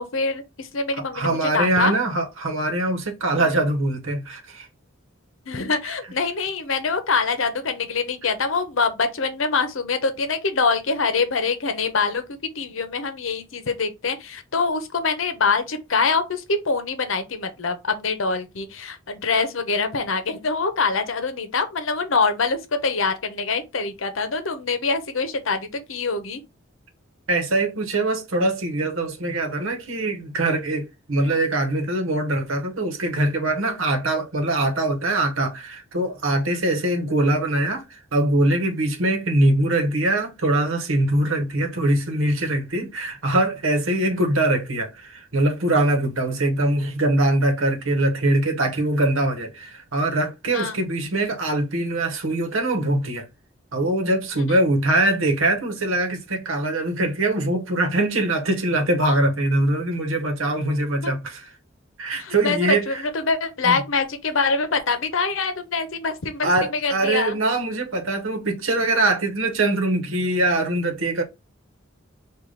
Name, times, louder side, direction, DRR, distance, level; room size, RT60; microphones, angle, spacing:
voice 1, 0.0-1.9 3.3-3.6 5.5-26.4 31.2-31.4 50.5-50.8 54.4-54.6 61.0-61.1 62.2-67.4, left 4 dB, 70° left, 0.8 m, -24 dB
voice 2, 1.1-4.7 5.8-5.9 27.3-53.3 53.7-61.5 62.0-63.0 63.6-63.8 66.4-71.2, right 1 dB, 80° right, 1.0 m, -22 dB
4.9 x 2.5 x 3.8 m
head